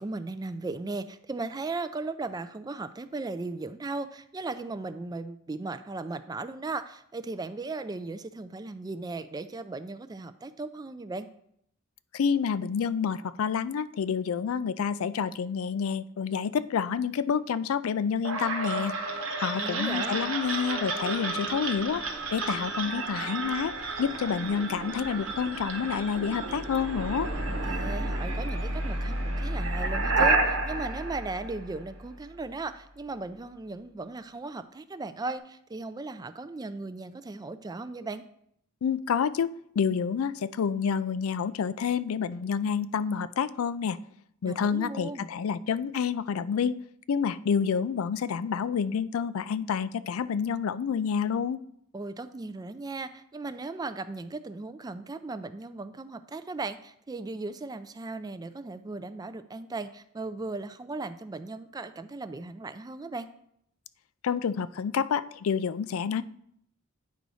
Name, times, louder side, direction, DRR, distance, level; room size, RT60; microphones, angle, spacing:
voice 1, 0.0-11.3 19.5-20.2 27.4-38.2 44.4-45.3 51.9-63.3, right 3 dB, 20° right, 12 dB, 0.3 m, -37 dB
voice 2, 12.1-18.9 19.4-22.0 22.3-23.7 24.0-27.3 38.8-44.0 44.4-46.8 47.1-51.6 64.2-66.2, left 6 dB, 80° left, 15 dB, 0.4 m, -28 dB
sound 1, 18.2-32.1, right 2 dB, 70° right, 1.0 m, -31 dB
9.4 x 3.9 x 4.8 m, 0.71 s
head